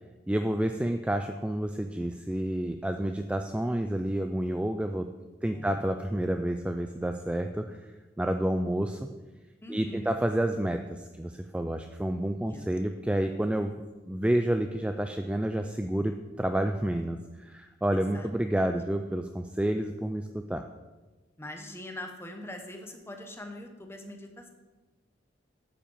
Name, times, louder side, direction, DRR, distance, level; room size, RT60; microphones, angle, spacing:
voice 1, 0.3-5.1 5.4-7.9 8.2-9.1 9.7-13.7 14.1-20.6, right 1 dB, 5° right, 6 dB, 0.3 m, -29 dB
voice 2, 5.5-5.8 9.6-10.1 12.4-12.6 17.9-18.3 21.4-24.5, left 1 dB, 15° left, 4 dB, 1.0 m, -42 dB
8.3 x 5.7 x 7.2 m, 1.2 s
head